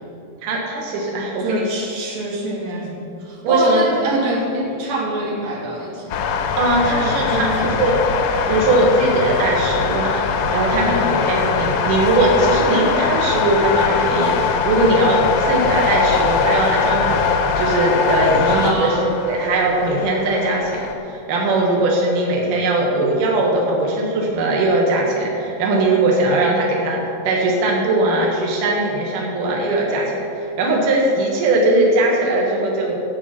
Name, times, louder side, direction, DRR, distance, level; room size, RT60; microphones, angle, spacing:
voice 1, 0.4-1.7 3.4-3.8 6.6-8.0 8.5-10.2 10.5-27.0 27.2-33.0, right 2 dB, 70° right, -2 dB, 2.9 m, -19 dB
voice 2, 1.4-6.2 7.0-7.7 10.8-11.1 18.5-19.1, right 2 dB, 90° right, -3 dB, 4.0 m, -25 dB
sound 1, 6.1-20.9, left 6 dB, 70° left, 1.8 m, -21 dB
13.5 x 8.4 x 5.9 m, 2.8 s
omnidirectional pair, 4.0 m